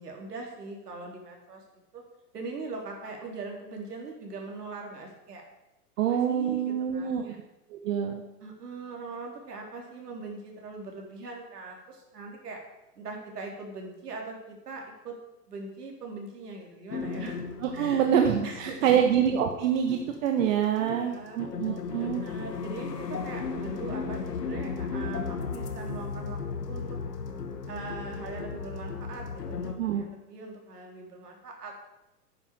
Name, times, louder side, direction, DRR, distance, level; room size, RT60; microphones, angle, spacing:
voice 1, 0.0-2.0 2.3-5.4 6.1-7.4 8.4-12.6 13.0-15.2 15.5-17.4 17.7-18.1 18.4-18.9 20.7-21.4 21.9-26.4 26.7-26.9 27.7-31.8, right 3 dB, 75° right, 0 dB, 3.8 m, -41 dB
voice 2, 6.0-7.3 7.7-8.2 17.6-22.2 29.8-30.0, right 8 dB, 55° right, 3 dB, 1.4 m, -26 dB
sound 1, 16.9-29.7, left 5 dB, 85° left, 1.4 m, -36 dB
10.0 x 9.8 x 6.6 m, 0.94 s
hypercardioid pair, 110°, 47 cm